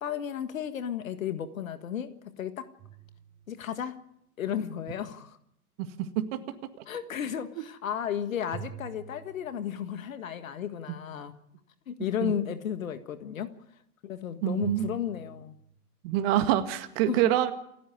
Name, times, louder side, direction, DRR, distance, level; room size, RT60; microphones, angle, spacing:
voice 1, 0.0-2.1 2.4-2.7 3.5-4.0 4.4-5.4 6.9-11.3 11.9-13.5 14.0-15.5 17.1-17.2, left 9 dB, 60° left, 10 dB, 1.8 m, -33 dB
sound 1, 2.8-4.0 8.5-10.1 14.6-15.7, right 9 dB, 25° right, 7.9 m, -46 dB
voice 2, 5.8-6.4 12.2-12.3 14.4-14.9 16.0-17.5, right 12 dB, 40° right, 8 dB, 2.0 m, -26 dB
29.0 x 10.5 x 9.8 m, 0.76 s
figure-of-eight pair, 110°, 45 cm